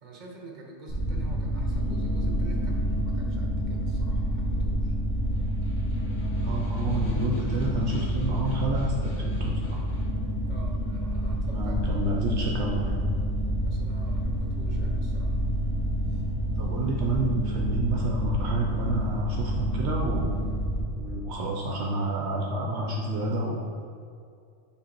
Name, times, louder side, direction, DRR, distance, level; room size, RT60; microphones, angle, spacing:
voice 1, 0.0-4.9 10.5-12.2 13.6-15.3 16.1-16.2, right 2 dB, 40° right, 0 dB, 0.9 m, -47 dB
sound 1, 0.9-20.8, equal, 65° left, 1.7 m, -28 dB
Snare drum, 5.2-10.2, left 3 dB, 85° left, 1.4 m, -46 dB
voice 2, 6.4-9.8 11.5-13.0 16.6-20.4 20.9-23.6, right 2 dB, 65° right, -1 dB, 0.9 m, -29 dB
6.3 x 4.0 x 4.4 m, 2.3 s
omnidirectional pair, 1.3 m